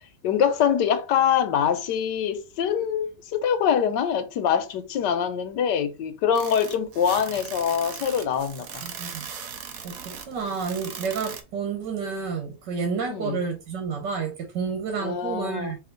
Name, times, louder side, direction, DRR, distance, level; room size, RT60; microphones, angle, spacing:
voice 1, 0.2-8.7 13.1-13.4 15.0-15.7, left 8 dB, 80° left, 1.4 m, -24 dB
sound 1, 6.4-11.4, right 7 dB, 60° right, 1.1 m, -39 dB
voice 2, 8.8-9.3 9.8-15.8, right 5 dB, 85° right, 1.8 m, -30 dB
5.1 x 2.7 x 3.9 m
omnidirectional pair, 1.8 m